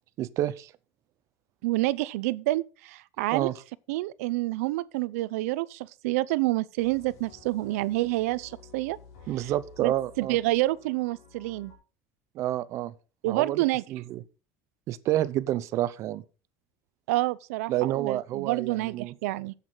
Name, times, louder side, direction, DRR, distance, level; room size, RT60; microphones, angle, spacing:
voice 1, 0.2-0.7 3.3-3.5 9.3-10.4 12.3-12.9 13.2-13.6 13.9-14.2 14.9-16.2 17.7-19.1, right 13 dB, 40° right, 0.7 m, -29 dB
voice 2, 1.6-3.5 3.9-9.0 9.4-9.5 9.8-11.7 13.2-13.8 17.1-19.5, right 18 dB, 85° right, 0.6 m, -28 dB
sound 1, 6.8-11.8, left 5 dB, 80° left, 6.7 m, -53 dB
12.0 x 8.3 x 3.9 m
cardioid pair, 155°, 8 cm